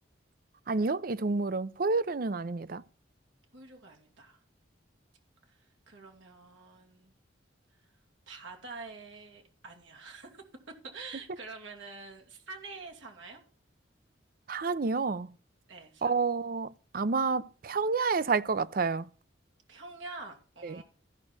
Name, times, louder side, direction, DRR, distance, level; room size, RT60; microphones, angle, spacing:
voice 1, 0.7-2.8 14.5-15.3 16.0-16.7 16.9-19.1 20.6-20.8, right 4 dB, 50° right, 0.5 m, -29 dB
voice 2, 3.5-4.4 5.5-7.1 8.3-10.4 10.8-13.4 15.7-16.1 19.7-20.8, right 3 dB, 85° right, 2.6 m, -46 dB
15.0 x 5.4 x 6.0 m
head